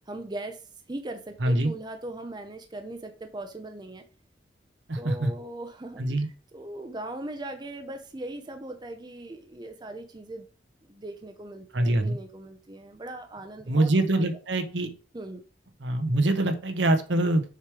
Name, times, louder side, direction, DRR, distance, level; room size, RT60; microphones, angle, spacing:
voice 1, 0.1-0.6 0.9-4.0 5.0-10.5 10.9-14.2 15.1-15.4, right 2 dB, 25° right, 0.6 m, -39 dB
voice 2, 1.4-1.7 4.9-5.3 6.0-6.3 11.7-12.2 13.7-14.9 15.8-17.4, right 1 dB, 70° right, 0.9 m, -24 dB
6.7 x 3.2 x 4.7 m
head